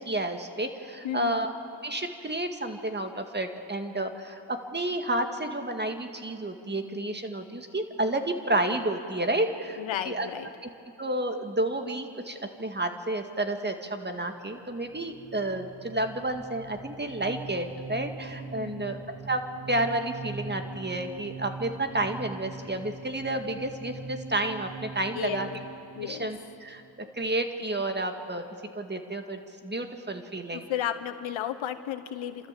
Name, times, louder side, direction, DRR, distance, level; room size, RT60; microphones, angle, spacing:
voice 1, 0.0-1.5 1.8-10.3 11.0-19.0 19.3-19.4 19.7-25.5 26.0-26.8 27.1-28.4 28.8-30.7, right 1 dB, 20° right, 6 dB, 2.0 m, -31 dB
voice 2, 1.0-1.4 9.8-10.5 18.6-19.0 25.1-25.5 26.0-26.3 30.5-32.5, left 10 dB, 80° left, 11 dB, 1.1 m, -33 dB
sound 1, 14.8-27.2, right 3 dB, 85° right, 2.6 m, -42 dB
28.5 x 13.5 x 7.7 m, 2.7 s
cardioid pair, 60°, 46 cm